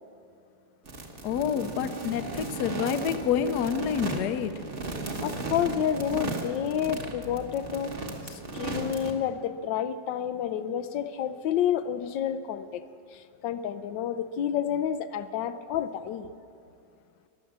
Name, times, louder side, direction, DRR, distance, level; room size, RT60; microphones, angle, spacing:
sound 1, 0.9-9.1, right 3 dB, 35° right, 1.3 m, -36 dB
voice 1, 1.2-4.6, left 8 dB, 70° left, 10 dB, 1.2 m, -28 dB
voice 2, 5.2-7.9 8.2-12.8 13.1-16.3, left 9 dB, 90° left, 11 dB, 1.3 m, -30 dB
15.5 x 11.0 x 7.3 m, 2.5 s
omnidirectional pair, 1.9 m